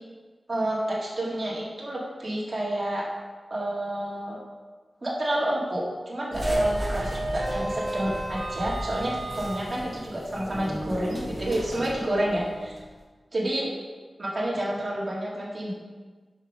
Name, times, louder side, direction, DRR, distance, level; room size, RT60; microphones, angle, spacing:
voice 1, 0.5-3.0 3.5-4.4 5.0-12.7 13.3-13.7 14.2-15.7, right 1 dB, 35° right, -5 dB, 1.9 m, -29 dB
sound 1, 6.3-12.8, right 1 dB, 15° right, 1.7 m, -32 dB
6.3 x 4.8 x 5.1 m, 1.4 s
wide cardioid pair, 105°, 0 cm